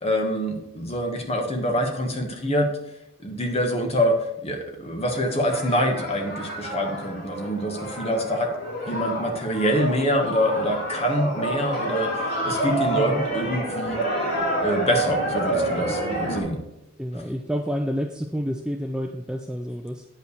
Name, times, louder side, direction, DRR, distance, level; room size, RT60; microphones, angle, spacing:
voice 1, 0.0-2.7 3.2-8.5 8.9-14.0 14.6-16.6, equal, 30° left, 3 dB, 1.4 m, -25 dB
sound 1, 5.0-16.4, right 1 dB, 45° left, 3.3 m, -28 dB
voice 2, 12.9-13.2 17.0-20.1, equal, 5° right, 4 dB, 0.4 m, -29 dB
9.0 x 5.6 x 6.5 m, 0.88 s
head